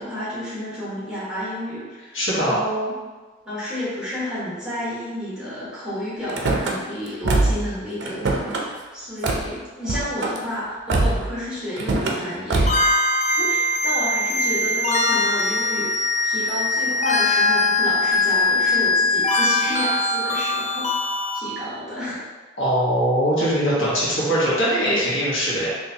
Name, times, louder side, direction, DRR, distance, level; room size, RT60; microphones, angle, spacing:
voice 1, 0.0-2.9 3.4-13.1 13.4-15.9 16.2-20.9 21.3-22.2, equal, 5° right, -10 dB, 1.3 m, -31 dB
voice 2, 2.1-2.6 22.6-25.7, equal, 70° left, -8 dB, 1.3 m, -21 dB
Car / Slam, 6.3-6.7 7.2-7.7 8.0-8.6 9.2-9.5 9.8-10.4 10.9-11.3 11.8-12.2 12.5-12.9, right 2 dB, 60° right, 0.5 m, -22 dB
sound 1, 12.7-21.4, left 2 dB, 35° left, 0.4 m, -21 dB
4.2 x 2.8 x 2.8 m, 1.3 s
head